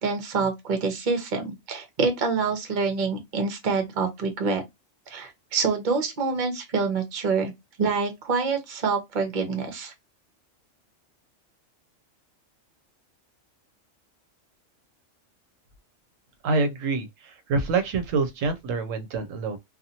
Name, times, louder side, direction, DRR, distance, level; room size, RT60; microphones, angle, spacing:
voice 1, 0.0-4.6 5.1-7.5 7.8-9.9, right 4 dB, 45° right, 0.8 m, -26 dB
voice 2, 16.4-19.6, right 4 dB, 80° right, 1.0 m, -26 dB
2.7 x 2.5 x 2.6 m
omnidirectional pair, 1.3 m